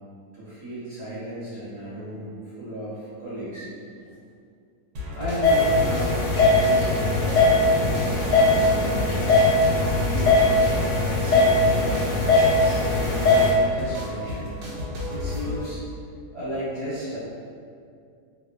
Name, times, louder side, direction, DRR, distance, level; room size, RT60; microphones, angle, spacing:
voice 1, 0.3-3.7 4.0-4.2 5.1-10.4 10.9-12.1 12.4-14.5 15.1-15.8 16.3-17.2, equal, 55° right, -10 dB, 1.4 m, -34 dB
sound 1, 5.0-15.6, left 1 dB, 90° right, 1.2 m, -34 dB
sound 2, 5.4-13.5, left 2 dB, 80° left, 1.1 m, -20 dB
2.8 x 2.2 x 2.3 m, 2.3 s
omnidirectional pair, 1.7 m